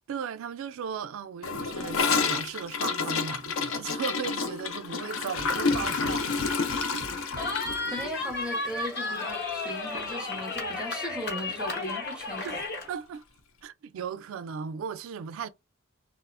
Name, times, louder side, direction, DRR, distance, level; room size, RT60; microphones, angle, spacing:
voice 1, 0.1-6.5 6.9-7.1 12.4-12.6 12.9-13.2 13.6-15.5, right 7 dB, 70° right, 0.3 m, -36 dB
Gurgling / Toilet flush, 1.4-9.7 9.9-10.1 10.4-10.8 11.1-11.2 11.5-11.6 12.5-12.6, left 4 dB, 70° left, 0.5 m, -30 dB
sound 1, 5.4-8.6, equal, 85° left, 1.1 m, -45 dB
Cheering, 7.4-12.9, left 3 dB, 50° left, 0.9 m, -33 dB
voice 2, 7.9-12.6, left 1 dB, 5° right, 0.5 m, -37 dB
2.8 x 2.0 x 2.4 m
head